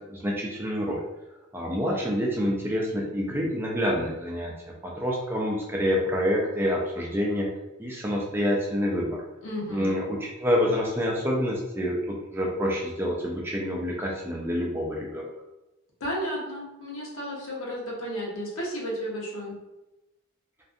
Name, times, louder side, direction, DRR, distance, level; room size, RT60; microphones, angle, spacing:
voice 1, 0.1-1.0 1.5-4.5 4.8-7.5 7.8-9.2 9.7-15.2, equal, 10° right, -2 dB, 0.3 m, -27 dB
voice 2, 9.4-9.9 16.0-19.5, equal, 75° left, -4 dB, 0.9 m, -33 dB
2.5 x 2.4 x 2.5 m, 0.99 s
head